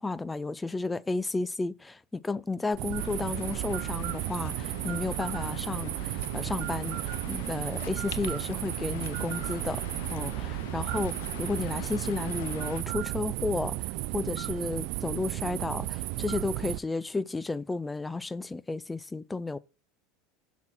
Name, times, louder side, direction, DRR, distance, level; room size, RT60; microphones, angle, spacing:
voice 1, 0.0-9.8 10.1-19.6, left 3 dB, 10° left, 0.4 m, -33 dB
sound 1, 2.7-16.8, right 18 dB, 60° right, 0.4 m, -34 dB
Waves surf, 3.0-12.8, left 12 dB, 80° left, 0.7 m, -44 dB
6.2 x 6.1 x 4.2 m
supercardioid pair, 130°, 0 cm